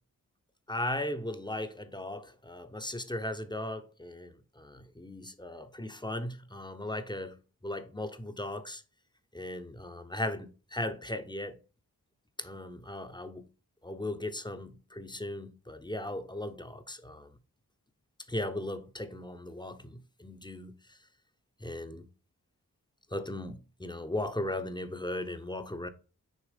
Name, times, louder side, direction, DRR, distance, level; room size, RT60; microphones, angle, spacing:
voice 1, 0.7-8.8 9.3-11.6 12.4-13.4 13.8-17.3 18.3-20.7 21.6-22.1 23.1-25.9, left 1 dB, 10° left, 0.8 m, -37 dB
6.4 x 2.9 x 5.1 m
cardioid pair, 45°, 36 cm